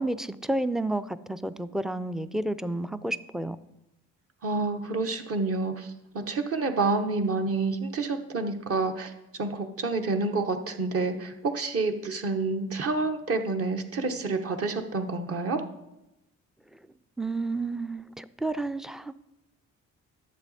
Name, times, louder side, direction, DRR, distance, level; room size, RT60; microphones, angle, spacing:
voice 1, 0.0-3.6 17.2-19.1, right 2 dB, ahead, 14 dB, 0.3 m, -31 dB
voice 2, 4.4-15.6, right 3 dB, 50° right, 5 dB, 1.1 m, -28 dB
11.5 x 7.2 x 4.1 m, 0.93 s
cardioid pair, 90°, 30 cm